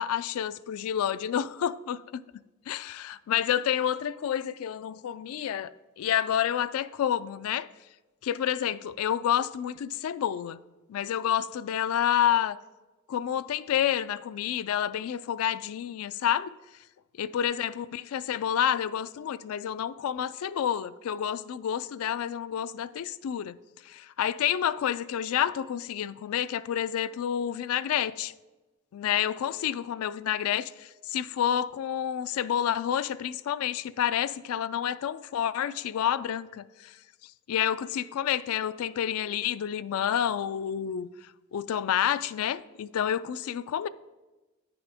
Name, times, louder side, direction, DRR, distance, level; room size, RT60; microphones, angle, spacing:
voice 1, 0.0-2.2 2.7-5.7 6.0-7.7 8.2-10.6 10.9-12.6 13.1-16.5 17.2-23.6 23.9-28.3 28.9-36.9 37.5-41.1 41.5-43.9, left 10 dB, 85° left, 0.3 m, -29 dB
9.7 x 6.1 x 3.5 m
head